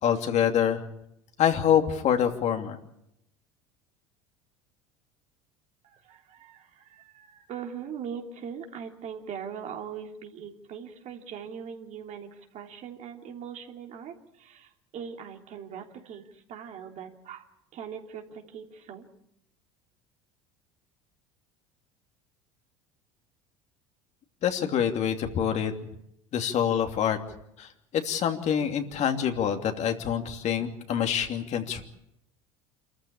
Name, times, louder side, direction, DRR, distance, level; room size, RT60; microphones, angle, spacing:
voice 1, 0.0-0.8 1.4-2.8 24.4-25.7 26.3-27.2 27.6-31.8, left 9 dB, 50° left, 5 dB, 2.8 m, -26 dB
voice 2, 5.8-19.1, right 7 dB, 50° right, 3 dB, 3.2 m, -41 dB
27.5 x 14.5 x 8.7 m, 0.80 s
hypercardioid pair, 75°, 15 cm